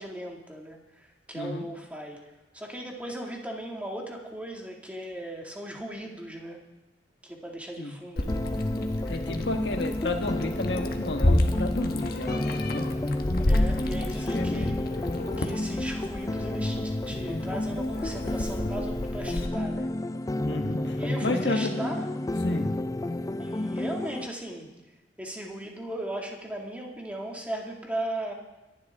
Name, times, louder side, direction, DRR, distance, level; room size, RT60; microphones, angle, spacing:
voice 1, 0.0-2.2 2.5-6.6 7.2-8.4 13.5-14.8 15.4-19.9 20.9-22.1 23.4-24.7 25.2-28.3, right 1 dB, 10° right, 0 dB, 2.2 m, -37 dB
Meow, 8.2-19.5, left 1 dB, 60° left, 1.3 m, -30 dB
sound 1, 8.3-24.3, left 1 dB, 20° left, 0.4 m, -31 dB
voice 2, 9.1-12.9 13.9-14.7 20.4-21.7 22.4-22.7, left 2 dB, 85° left, 4 dB, 1.4 m, -32 dB
25.5 x 11.5 x 3.6 m, 1.1 s
head